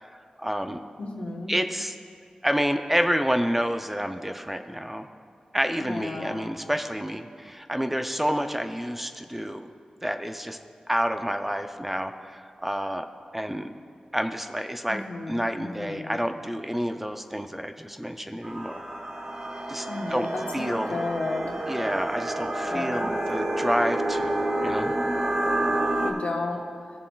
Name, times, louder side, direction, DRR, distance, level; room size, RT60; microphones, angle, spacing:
voice 1, 0.1-0.9 1.5-1.9 2.4-5.1 5.5-9.7 10.0-10.6 10.9-13.1 13.3-13.7 14.1-18.8 19.7-20.3 20.5-21.0 21.7-25.0, equal, 10° right, 7 dB, 0.4 m, -29 dB
voice 2, 1.0-1.5 5.8-6.5 14.9-16.2 19.9-21.6 22.7-23.1 26.0-26.6, left 3 dB, 85° left, 1 dB, 1.0 m, -33 dB
sound 1, 18.4-26.1, right 1 dB, 35° right, 0.7 m, -29 dB
17.5 x 7.1 x 2.3 m, 2.3 s
wide cardioid pair, 110°, 2 cm